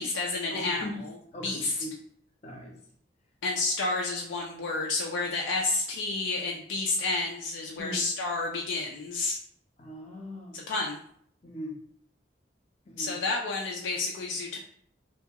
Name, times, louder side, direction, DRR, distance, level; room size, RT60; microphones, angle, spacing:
voice 1, 0.0-1.2 1.4-1.8 3.4-9.4 10.5-11.0 13.0-14.6, left 3 dB, 85° left, -1 dB, 0.4 m, -30 dB
voice 2, 0.5-1.0 1.3-1.9 2.4-2.7 7.8-8.0 9.8-10.6 11.4-11.7 12.9-13.2, equal, 35° left, 0 dB, 0.6 m, -39 dB
2.7 x 2.3 x 2.8 m, 0.62 s
head